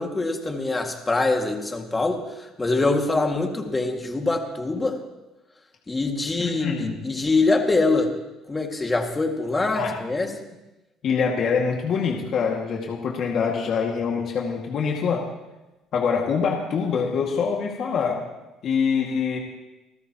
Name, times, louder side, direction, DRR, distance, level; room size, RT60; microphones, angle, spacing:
voice 1, 0.0-5.0 5.9-8.1 8.5-10.3, left 3 dB, 20° left, 3 dB, 2.1 m, -24 dB
voice 2, 6.4-7.0 9.7-9.9 11.0-15.2 15.9-18.2 18.6-19.4, left 6 dB, 55° left, -1 dB, 2.0 m, -24 dB
29.0 x 13.0 x 3.0 m, 1.0 s
cardioid pair, 105°, 0 cm